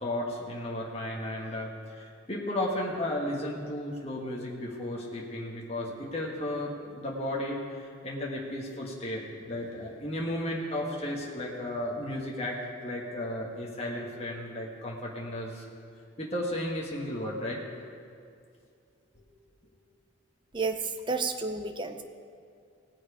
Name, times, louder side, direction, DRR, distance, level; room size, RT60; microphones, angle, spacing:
voice 1, 0.0-15.7 16.2-17.6 19.1-19.2, left 1 dB, 30° left, -3 dB, 1.5 m, -34 dB
voice 2, 21.1-22.0, right 4 dB, 25° right, 6 dB, 0.7 m, -30 dB
19.0 x 7.7 x 5.0 m, 2.3 s
head